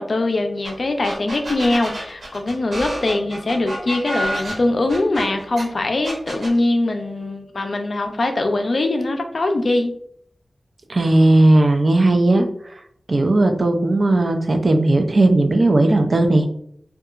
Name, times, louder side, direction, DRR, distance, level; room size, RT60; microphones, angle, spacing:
voice 1, 0.0-9.9, left 2 dB, 65° left, 4 dB, 0.4 m, -22 dB
sound 1, 0.6-0.7 1.0-5.6 6.0-6.5, right 1 dB, 75° right, 1.1 m, -29 dB
voice 2, 10.9-12.5 13.1-16.5, right 2 dB, 55° right, 5 dB, 0.3 m, -16 dB
2.8 x 2.2 x 2.4 m, 0.67 s
wide cardioid pair, 70°, 0 cm